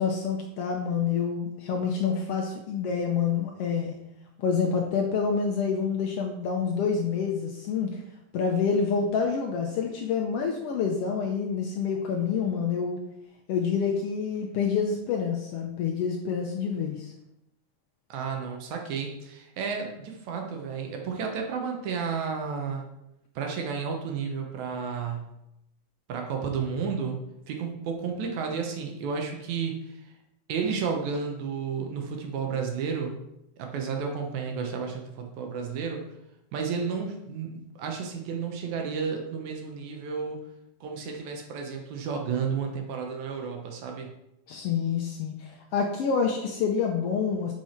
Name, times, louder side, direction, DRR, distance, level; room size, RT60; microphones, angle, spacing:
voice 1, 0.0-3.9 4.4-8.0 8.3-13.0 13.5-17.1 44.5-47.5, left 6 dB, 80° left, 1 dB, 1.3 m, -27 dB
voice 2, 18.1-22.8 23.4-25.3 26.1-27.2 27.5-30.0 30.5-33.2 33.6-36.0 36.5-40.4 40.8-44.1, right 6 dB, 70° right, 2 dB, 2.2 m, -32 dB
5.8 x 5.8 x 4.3 m, 0.85 s
omnidirectional pair, 3.6 m